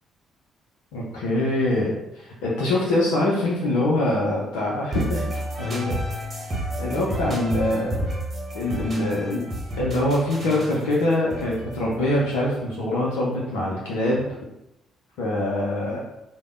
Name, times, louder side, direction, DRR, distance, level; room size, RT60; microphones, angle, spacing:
voice 1, 0.9-6.0 6.3-6.5 6.8-8.1 8.5-9.4 9.8-14.3 15.2-16.0, left 1 dB, 70° left, -5 dB, 0.5 m, -24 dB
sound 1, 4.9-12.7, equal, 30° right, 1.0 m, -31 dB
3.4 x 2.1 x 3.5 m, 0.90 s
figure-of-eight pair, 45°, 0 cm